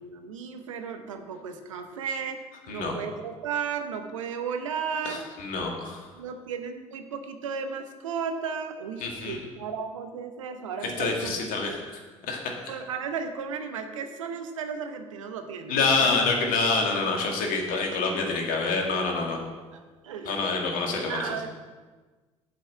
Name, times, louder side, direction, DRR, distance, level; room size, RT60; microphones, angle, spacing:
voice 1, 0.0-5.2 6.1-11.7 12.7-16.1 19.7-20.7 21.1-21.5, right 6 dB, 80° right, 7 dB, 0.9 m, -35 dB
voice 2, 5.0-6.0 9.0-9.4 10.8-11.8 12.3-12.7 15.7-19.4 20.3-21.2, left 4 dB, 60° left, 1 dB, 2.0 m, -27 dB
7.5 x 5.6 x 7.6 m, 1.3 s
figure-of-eight pair, 60°, 16 cm